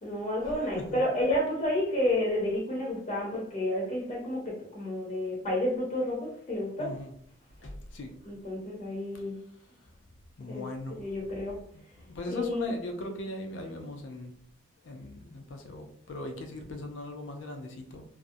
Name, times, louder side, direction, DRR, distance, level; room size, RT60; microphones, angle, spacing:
voice 1, 0.0-6.9 8.2-9.4 10.5-10.6 11.0-11.6 12.3-12.7, left 1 dB, 40° left, -2 dB, 0.6 m, -30 dB
voice 2, 6.8-7.1 7.6-8.1 10.4-11.0 11.7-14.3 14.8-18.0, left 1 dB, 90° left, 5 dB, 0.5 m, -39 dB
2.4 x 2.0 x 2.5 m, 0.64 s
head